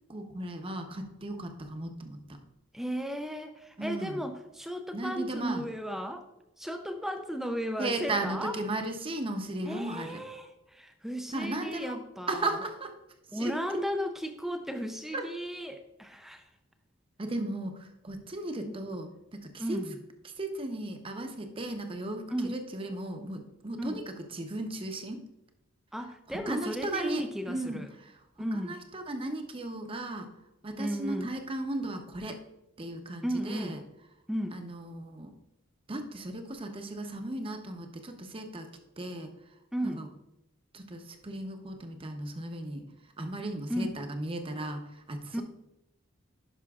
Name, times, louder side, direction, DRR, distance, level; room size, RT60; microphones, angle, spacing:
voice 1, 0.1-2.4 3.8-4.2 4.9-5.7 7.8-10.2 11.3-12.0 12.3-12.9 13.3-13.5 15.1-15.3 17.2-19.8 20.4-25.2 26.5-28.1 28.4-30.3 30.6-32.4 32.8-33.8 34.5-35.3 35.9-38.7 39.0-39.3 40.0-40.1 40.7-42.8 43.2-45.4, right 2 dB, 25° right, 6 dB, 0.7 m, -36 dB
voice 2, 2.7-6.3 6.6-8.6 9.7-12.6 13.3-16.5 18.7-18.8 19.6-20.0 22.3-22.6 23.8-24.0 25.9-27.9 28.4-28.8 30.8-31.3 33.2-33.8 34.3-34.7 39.7-40.1 43.7-44.0 45.3-45.4, equal, ahead, 6 dB, 0.3 m, -35 dB
11.0 x 5.6 x 2.4 m, 0.90 s
head